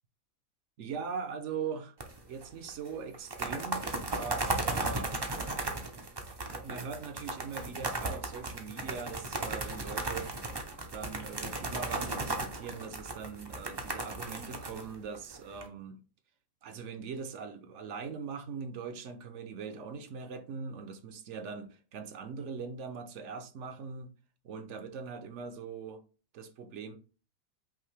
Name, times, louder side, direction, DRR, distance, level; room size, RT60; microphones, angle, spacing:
voice 1, 0.8-1.9 2.3-5.2 6.4-10.3 10.9-16.0 16.6-24.1 24.4-26.0 26.3-27.0, right 5 dB, 65° right, 0.9 m, -41 dB
sound 1, 2.0-2.4 2.7-2.8 3.1-15.6, right 2 dB, 35° right, 0.4 m, -35 dB
5.7 x 2.6 x 3.3 m
omnidirectional pair, 1.5 m